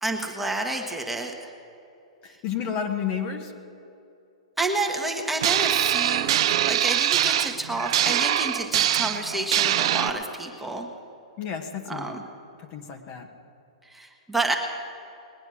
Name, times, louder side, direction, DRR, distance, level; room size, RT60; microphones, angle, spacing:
voice 1, 0.0-1.5 2.3-2.4 4.6-10.9 11.9-12.2 13.8-14.6, right 2 dB, 5° right, 2 dB, 1.4 m, -29 dB
voice 2, 2.2-3.5 11.4-12.2 12.7-13.3, left 7 dB, 40° left, 4 dB, 1.5 m, -31 dB
sound 1, 5.4-10.1, right 12 dB, 55° right, 0.6 m, -23 dB
20.5 x 9.7 x 6.4 m, 2.7 s
hypercardioid pair, 115°, 3 cm